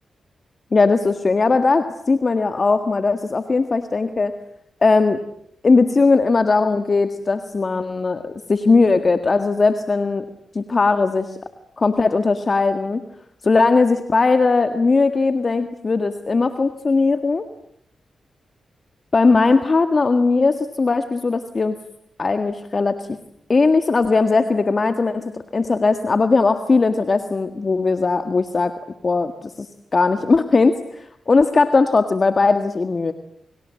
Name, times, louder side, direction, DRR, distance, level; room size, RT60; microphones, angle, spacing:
voice 1, 0.7-4.3 4.8-5.2 5.6-10.3 10.6-11.4 11.8-13.0 13.4-17.5 19.1-21.8 22.2-23.1 23.5-28.7 29.0-29.7 29.9-33.1, left 3 dB, 45° left, 8 dB, 1.8 m, -18 dB
29.5 x 26.0 x 7.6 m, 0.72 s
supercardioid pair, 50°, 0 cm